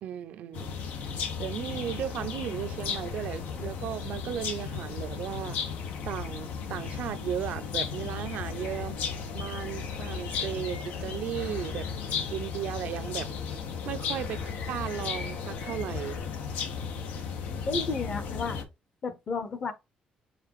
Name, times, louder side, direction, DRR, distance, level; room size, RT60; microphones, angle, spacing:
voice 1, 0.0-0.8 1.4-5.6 6.1-9.0 9.3-16.2, right 10 dB, 65° right, 0.5 m, -36 dB
sound 1, 0.5-18.6, left 6 dB, 85° left, 1.5 m, -35 dB
voice 2, 17.7-18.6 19.0-19.7, left 3 dB, 30° left, 0.9 m, -32 dB
4.9 x 4.1 x 4.6 m
cardioid pair, 175°, 3 cm